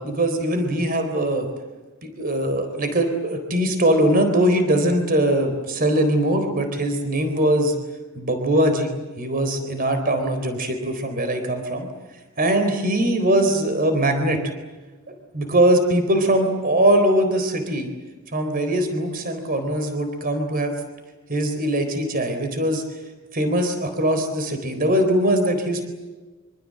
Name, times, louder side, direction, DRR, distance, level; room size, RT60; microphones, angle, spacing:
voice 1, 0.0-1.5 2.0-7.7 8.1-11.9 12.4-14.4 15.1-17.9 18.3-20.7 21.3-22.8 23.3-25.8, right 1 dB, 40° right, 7 dB, 4.0 m, -21 dB
25.5 x 25.5 x 7.8 m, 1.2 s
head